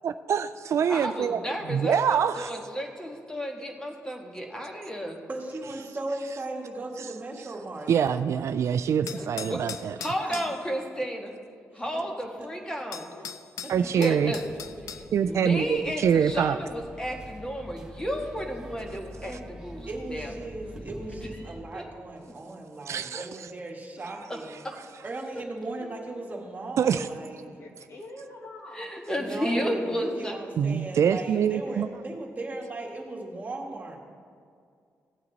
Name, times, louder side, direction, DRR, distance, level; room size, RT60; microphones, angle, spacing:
voice 1, 0.0-1.4 1.7-2.5 7.9-9.9 13.7-14.3 15.1-16.6 22.9-23.3 26.8-27.1 30.6-31.9, right 7 dB, 65° right, 12 dB, 0.4 m, -25 dB
voice 2, 0.8-5.2 9.4-9.7 10.0-11.3 11.7-13.1 13.7-14.6 15.2-20.3 21.0-21.8 23.1-23.2 24.3-24.7 28.7-30.3, equal, 15° left, 2 dB, 1.6 m, -33 dB
voice 3, 5.3-8.3 10.2-10.5 11.9-12.0 12.4-12.5 13.8-13.9 19.9-24.5 25.0-27.4 29.2-34.0, right 2 dB, 30° right, -1 dB, 1.9 m, -37 dB
voice 4, 9.0-9.4 13.1-13.3 25.8-25.9 27.4-28.9 29.6-30.1 31.6-31.8, left 2 dB, 55° left, 1 dB, 1.8 m, -45 dB
sound 1, 9.1-10.6 12.4-12.5 12.9-15.1, left 8 dB, 90° left, 0.5 m, -39 dB
sound 2, 14.1-21.6, right 1 dB, 10° right, 1.5 m, -45 dB
16.0 x 8.7 x 4.1 m, 2.3 s
cardioid pair, 105°, 5 cm